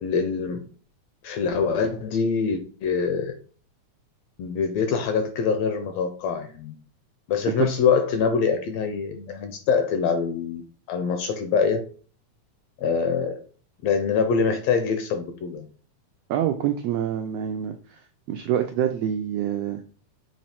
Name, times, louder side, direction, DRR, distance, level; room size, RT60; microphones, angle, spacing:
voice 1, 0.0-0.6 1.2-3.3 4.4-6.7 7.3-10.6 10.9-11.8 12.8-13.4 13.8-15.7, left 5 dB, 75° left, 7 dB, 1.6 m, -24 dB
voice 2, 16.3-18.0 18.3-19.8, right 10 dB, 90° right, 6 dB, 1.4 m, -26 dB
7.2 x 3.1 x 4.2 m, 0.41 s
omnidirectional pair, 3.5 m